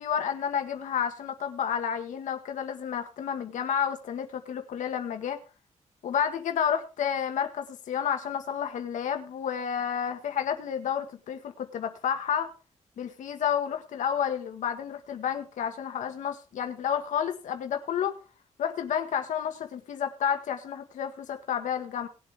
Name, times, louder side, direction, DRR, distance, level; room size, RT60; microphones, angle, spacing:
voice 1, 0.0-5.4 6.0-12.5 13.0-18.1 18.6-22.1, left 8 dB, 90° left, 6 dB, 1.7 m, -30 dB
19.5 x 7.7 x 3.5 m, 0.32 s
wide cardioid pair, 125°, 13 cm